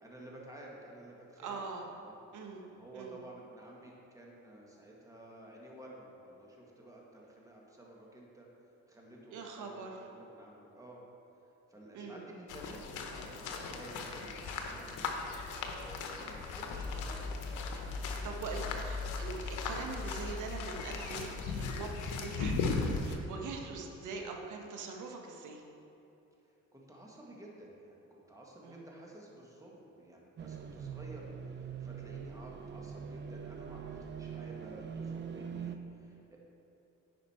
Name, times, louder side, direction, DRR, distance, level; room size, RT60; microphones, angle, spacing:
voice 1, 0.0-1.7 2.0-2.2 2.6-8.5 8.9-11.0 11.7-15.1 15.6-17.3 17.7-18.8 26.7-36.4, right 1 dB, 10° right, -3 dB, 1.5 m, -52 dB
voice 2, 1.4-1.9 2.3-2.6 2.9-3.2 9.3-9.9 11.9-12.2 18.2-25.6 28.6-28.9, right 4 dB, 80° right, 2 dB, 1.1 m, -43 dB
sound 1, 12.5-23.1, left 4 dB, 85° left, 0.9 m, -38 dB
sound 2, 14.6-22.6, left 3 dB, 40° left, 0.6 m, -43 dB
sound 3, 30.4-35.8, right 7 dB, 40° right, 0.5 m, -43 dB
10.0 x 5.2 x 4.3 m, 2.9 s
cardioid pair, 90°, 30 cm